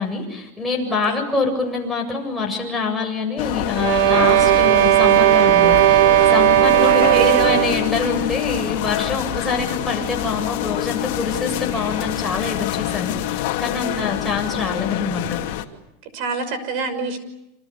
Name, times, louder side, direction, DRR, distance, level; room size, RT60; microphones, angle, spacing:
voice 1, 0.0-15.4, left 4 dB, 5° left, -1 dB, 7.8 m, -25 dB
voice 2, 0.9-1.2 6.7-7.8 13.8-14.1 16.1-17.2, right 5 dB, 55° right, 11 dB, 6.1 m, -26 dB
sound 1, 3.4-15.7, left 14 dB, 60° left, 2.6 m, -26 dB
sound 2, 3.7-7.9, right 15 dB, 70° right, 1.1 m, -15 dB
29.0 x 27.0 x 7.0 m, 0.86 s
supercardioid pair, 150°, 0 cm